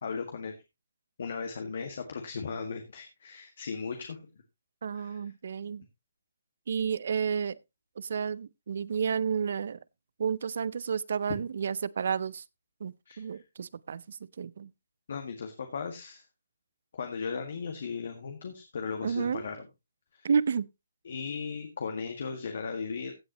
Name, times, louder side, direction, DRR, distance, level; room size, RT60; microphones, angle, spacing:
voice 1, 0.0-0.6 1.2-4.3 4.9-5.2 13.1-13.4 15.1-16.2 16.9-19.7 20.1-20.3 21.1-23.1, left 5 dB, 65° left, 1.8 m, -37 dB
voice 2, 4.8-5.9 6.7-7.6 8.0-9.8 10.2-12.4 12.8-14.7 19.0-19.4 20.2-20.7, right 6 dB, 60° right, 0.5 m, -31 dB
16.0 x 7.8 x 2.9 m
hypercardioid pair, 145°, 0 cm